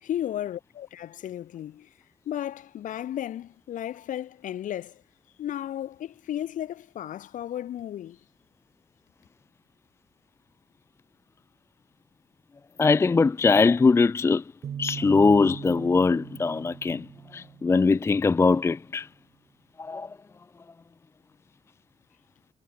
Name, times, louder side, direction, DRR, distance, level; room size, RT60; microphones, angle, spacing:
voice 1, 0.0-1.9 2.3-5.0 5.4-8.2, left 11 dB, 65° left, 3.7 m, -34 dB
voice 2, 12.8-14.4 14.8-17.1 17.3-19.1 19.8-20.1, left 4 dB, 20° left, 0.5 m, -21 dB
sound 1, 14.6-18.3, right 8 dB, 45° right, 1.5 m, -40 dB
cardioid pair, 115°, 14 cm